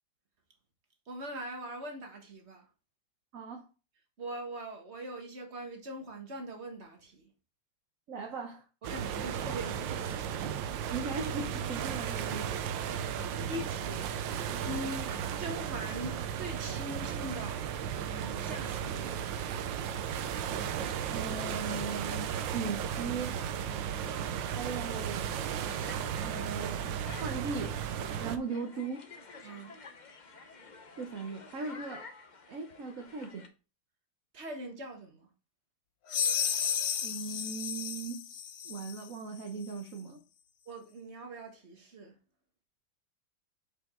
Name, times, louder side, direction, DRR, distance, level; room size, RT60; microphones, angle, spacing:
voice 1, 1.1-2.7 4.2-7.3 8.8-10.2 13.0-17.6 18.0-19.6 23.7-23.9 29.4-29.7 34.3-35.3 40.7-42.2, right 1 dB, 35° right, 1.7 m, -42 dB
voice 2, 3.3-3.7 8.1-8.6 10.9-12.5 13.2-13.3 21.1-23.4 24.5-25.3 26.2-26.9 27.2-27.8 28.2-29.0 31.0-32.1 32.5-33.5 37.0-38.3 38.6-40.2, right 4 dB, 50° right, 1.2 m, -38 dB
sound 1, 8.8-28.4, right 8 dB, 75° right, 1.4 m, -35 dB
sound 2, 25.8-33.5, left 4 dB, 50° left, 0.5 m, -51 dB
sound 3, 36.1-39.1, left 8 dB, 65° left, 1.3 m, -33 dB
7.1 x 5.0 x 3.7 m
omnidirectional pair, 2.1 m